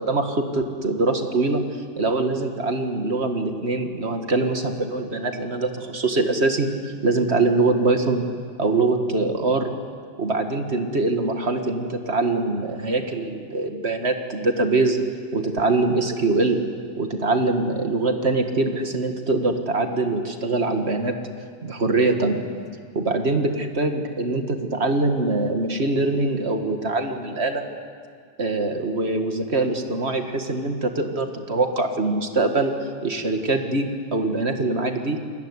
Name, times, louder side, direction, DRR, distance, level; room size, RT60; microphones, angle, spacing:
voice 1, 0.0-1.6 2.0-6.7 7.0-8.2 8.6-9.7 10.2-15.0 15.3-16.6 17.0-21.2 21.6-22.5 22.9-27.6 28.4-32.7 33.0-35.2, right 2 dB, 40° right, 5 dB, 2.1 m, -23 dB
29.0 x 20.5 x 9.8 m, 2.2 s
omnidirectional pair, 1.8 m